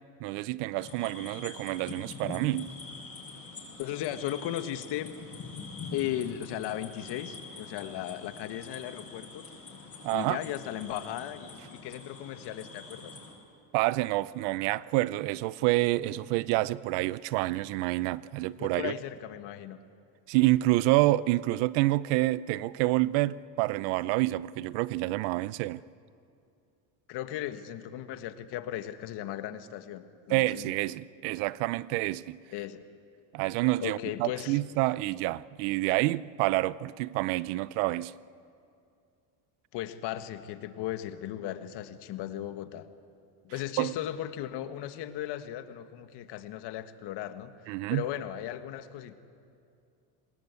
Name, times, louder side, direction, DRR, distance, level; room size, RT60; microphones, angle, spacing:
voice 1, 0.2-2.7 10.0-10.4 13.7-18.9 20.3-25.8 30.3-32.4 33.3-38.1 43.8-43.9 47.7-48.0, right 18 dB, 80° right, 0.7 m, -28 dB
sound 1, 0.7-13.3, left 4 dB, 30° left, 7.3 m, -45 dB
voice 2, 3.8-5.1 5.9-9.4 10.1-13.1 18.6-19.8 27.1-30.7 32.5-32.8 33.8-34.6 39.7-42.9 43.4-47.5 47.9-49.2, left 12 dB, 65° left, 1.7 m, -36 dB
28.0 x 20.0 x 8.2 m
supercardioid pair, 105°, 43 cm